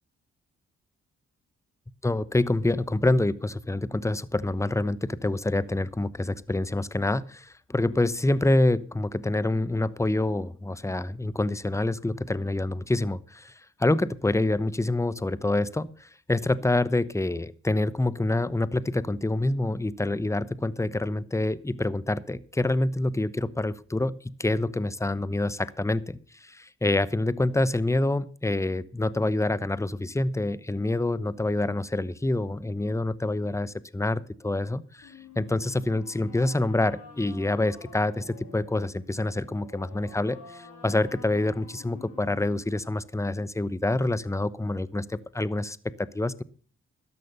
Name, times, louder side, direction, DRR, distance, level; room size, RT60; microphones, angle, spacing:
voice 1, 2.0-13.5 13.8-46.4, left 2 dB, 10° left, 18 dB, 1.0 m, -27 dB
sound 1, 35.0-43.0, left 4 dB, 80° left, 8.0 m, -49 dB
13.0 x 11.0 x 5.6 m, 0.42 s
supercardioid pair, 45°, 30 cm